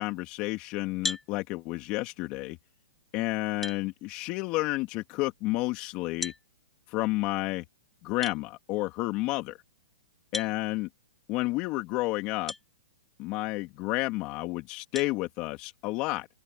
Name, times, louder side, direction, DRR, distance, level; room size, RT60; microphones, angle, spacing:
voice 1, 0.0-2.6 3.1-6.3 6.9-7.6 8.0-9.6 10.3-10.9 11.3-12.5 13.2-16.3, left 21 dB, 35° left, 3.0 m, -31 dB
sound 1, 1.0-1.3 3.0-3.1 3.6-3.8 6.2-6.4 8.2-8.4 10.3-10.6 12.5-12.6 13.3-13.4 14.9-15.1, left 3 dB, 5° left, 4.0 m, -35 dB
open air
hypercardioid pair, 140°, 3 cm